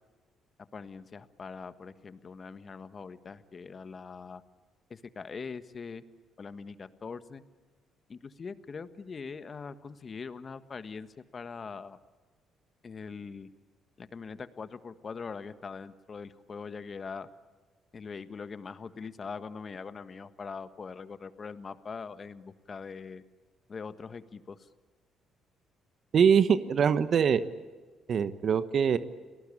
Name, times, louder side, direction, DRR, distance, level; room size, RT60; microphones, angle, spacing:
voice 1, 0.7-4.4 4.9-6.0 6.4-7.4 8.1-11.1 11.3-12.0 12.8-13.5 14.0-17.3 17.9-23.2 23.7-24.6, left 5 dB, 45° left, 12 dB, 1.5 m, -42 dB
voice 2, 26.1-27.4 28.1-29.0, right 7 dB, 55° right, 13 dB, 1.2 m, -23 dB
29.5 x 19.0 x 8.6 m, 1.4 s
hypercardioid pair, 55°, 0 cm